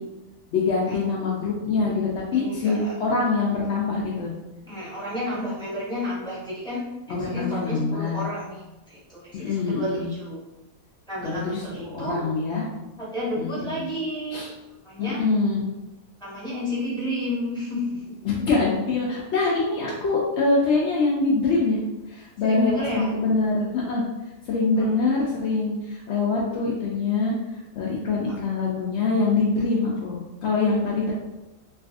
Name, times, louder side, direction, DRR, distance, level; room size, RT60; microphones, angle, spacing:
voice 1, 0.5-4.3 7.1-8.2 9.3-10.1 11.2-12.6 13.4-13.8 14.3-14.5 15.0-15.6 18.2-21.8 22.1-24.0 24.5-27.3 27.8-31.1, left 3 dB, 75° left, -4 dB, 0.6 m, -24 dB
voice 2, 2.3-2.9 4.7-10.4 11.1-12.2 13.0-14.4 14.8-15.2 16.2-18.3 22.4-23.1 24.8-25.0 28.3-28.4, left 1 dB, 5° left, -9 dB, 0.9 m, -31 dB
3.2 x 2.5 x 2.4 m, 1.0 s
omnidirectional pair, 1.7 m